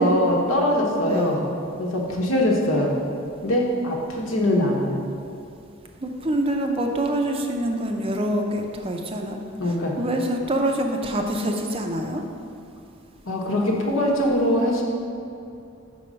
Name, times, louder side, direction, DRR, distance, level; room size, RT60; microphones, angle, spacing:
voice 1, 0.0-1.5 1.8-3.0 3.4-5.0 9.6-10.0 13.3-14.8, left 1 dB, 80° left, -1 dB, 1.1 m, -22 dB
voice 2, 1.1-1.4 6.0-9.4 10.0-12.2, right 1 dB, 25° right, 3 dB, 0.5 m, -25 dB
5.4 x 4.5 x 6.1 m, 2.6 s
head